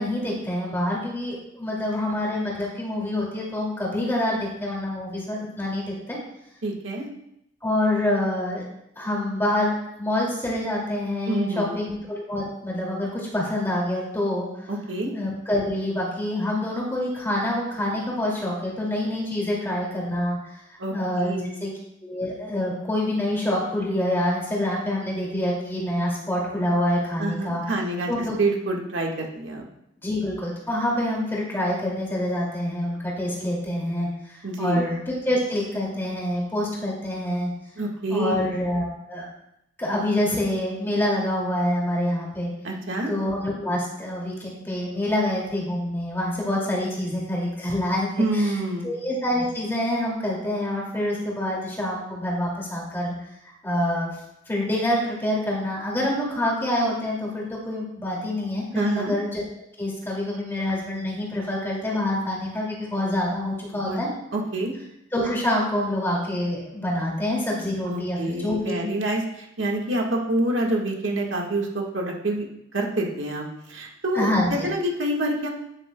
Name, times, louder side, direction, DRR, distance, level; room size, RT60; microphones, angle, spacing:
voice 1, 0.0-6.2 7.6-8.6 9.0-14.7 15.1-20.4 20.7-21.7 22.0-27.6 28.1-28.4 30.0-37.5 38.1-39.3 39.8-42.5 43.1-48.5 48.8-53.1 53.6-54.1 54.5-59.4 59.8-64.1 65.1-68.8 74.1-74.7, left 1 dB, 15° left, -4 dB, 2.4 m, -26 dB
voice 2, 6.6-7.1 11.3-11.8 14.7-15.1 20.8-21.7 27.2-28.1 28.4-29.7 34.4-34.9 37.8-38.5 42.6-43.1 48.2-48.9 58.7-59.1 63.7-64.0 64.3-64.7 67.8-72.5 72.7-75.5, right 1 dB, 90° right, 0 dB, 1.5 m, -27 dB
9.8 x 9.3 x 2.2 m, 0.80 s
head